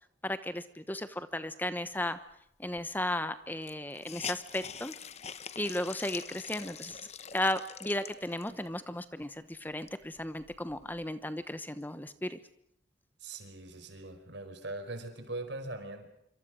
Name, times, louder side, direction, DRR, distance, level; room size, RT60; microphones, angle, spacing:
voice 1, 0.2-2.2 2.6-4.9 5.6-7.0 7.3-12.4, left 1 dB, 10° left, 11 dB, 1.0 m, -35 dB
Hiss, 2.8-2.9 3.1-3.2 3.6-8.7 9.2-9.3 9.7-11.1, left 7 dB, 35° left, 1.0 m, -44 dB
voice 2, 13.2-16.1, right 2 dB, 70° right, 7 dB, 5.0 m, -41 dB
26.5 x 25.0 x 6.3 m, 0.77 s
head